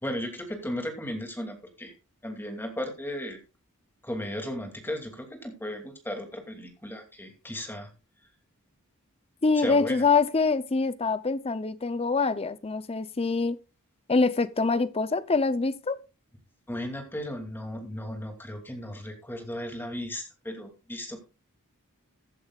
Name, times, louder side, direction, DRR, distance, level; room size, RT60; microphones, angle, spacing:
voice 1, 0.0-1.9 2.2-3.4 4.0-7.9 9.5-10.0 16.7-21.2, left 1 dB, 10° left, 2.6 m, -35 dB
voice 2, 9.4-13.6 14.1-16.0, left 4 dB, 25° left, 0.6 m, -25 dB
15.5 x 11.0 x 2.4 m
head